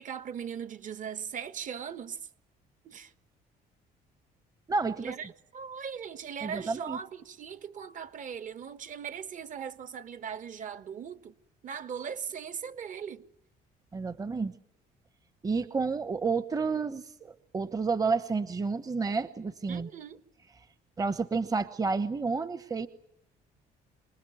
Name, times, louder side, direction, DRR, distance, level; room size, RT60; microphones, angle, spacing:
voice 1, 0.0-2.2 2.8-3.1 5.0-11.3 11.6-13.2 19.7-20.2, right 7 dB, 50° right, 1.5 m, -39 dB
voice 2, 4.7-5.2 6.4-7.0 13.9-14.6 15.4-19.9 21.0-22.9, right 4 dB, 20° right, 1.0 m, -30 dB
26.5 x 20.0 x 9.3 m
cardioid pair, 110°, 17 cm